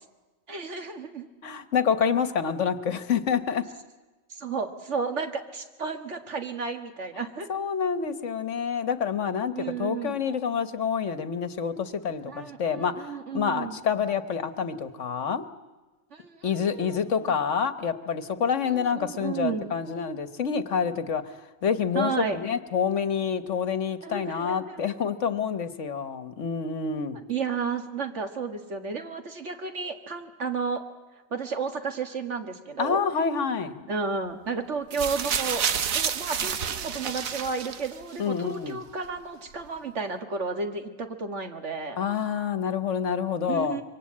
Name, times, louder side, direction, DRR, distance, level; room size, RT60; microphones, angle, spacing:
voice 1, 0.5-1.3 4.3-7.5 9.5-10.2 12.3-13.8 16.1-17.4 18.7-19.7 21.9-22.4 24.0-24.9 27.3-30.8 31.3-33.0 33.6-35.6 35.9-42.0 43.5-43.8, right 5 dB, 60° right, 6 dB, 2.0 m, -32 dB
voice 2, 1.4-3.6 7.5-15.5 16.4-21.3 21.6-27.2 32.8-33.8 38.2-38.8 42.0-43.8, left 6 dB, 65° left, 12 dB, 1.4 m, -27 dB
sound 1, 34.9-38.2 39.0-39.1, right 7 dB, 85° right, 1.4 m, -29 dB
25.5 x 23.5 x 8.6 m, 1.2 s
omnidirectional pair, 1.4 m